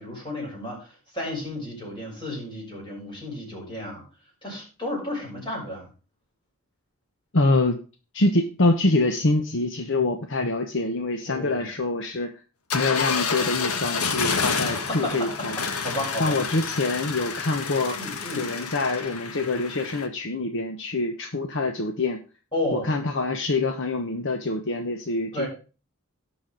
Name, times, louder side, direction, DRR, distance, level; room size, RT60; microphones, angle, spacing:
voice 1, 0.0-4.1 4.4-5.9 11.3-11.6 14.6-15.5 15.8-16.4 18.0-18.5 22.5-22.9 25.3-25.5, left 1 dB, 20° left, -3 dB, 6.6 m, -32 dB
voice 2, 7.3-7.8 8.1-12.3 12.7-15.6 16.2-18.0 18.4-22.2 22.7-25.5, left 2 dB, 60° left, 5 dB, 1.0 m, -25 dB
sound 1, 12.7-20.1, left 5 dB, 85° left, 1.3 m, -29 dB
17.5 x 6.2 x 3.9 m, 0.35 s
head